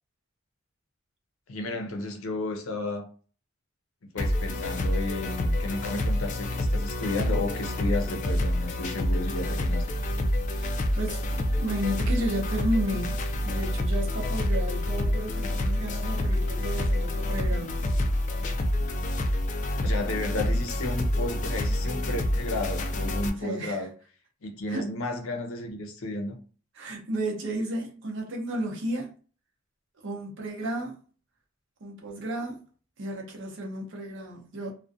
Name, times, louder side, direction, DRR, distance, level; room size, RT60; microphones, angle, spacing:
voice 1, 1.5-3.1 4.0-9.8 19.8-23.9 24.4-26.4, left 2 dB, 80° left, 0.6 m, -33 dB
sound 1, 4.2-23.3, left 1 dB, 40° left, 0.3 m, -27 dB
voice 2, 10.5-17.9 23.4-23.9 24.7-24.9 26.8-29.1 30.0-31.0 31.8-32.6 33.0-34.7, right 1 dB, 65° right, 0.7 m, -33 dB
2.4 x 2.2 x 2.6 m
head